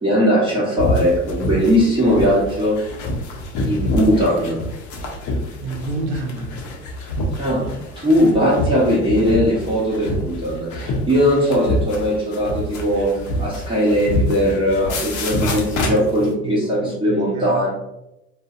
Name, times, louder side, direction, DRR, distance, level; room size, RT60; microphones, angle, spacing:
voice 1, 0.0-2.8 3.6-4.6 7.3-7.7 8.0-13.1 13.4-17.7, equal, 15° right, -7 dB, 0.9 m, -19 dB
sound 1, 0.8-16.3, left 2 dB, 60° left, 0.7 m, -26 dB
voice 2, 5.6-6.6 15.8-17.6, right 2 dB, 80° right, 2 dB, 0.5 m, -29 dB
2.5 x 2.1 x 2.4 m, 0.90 s
hypercardioid pair, 70°, 33 cm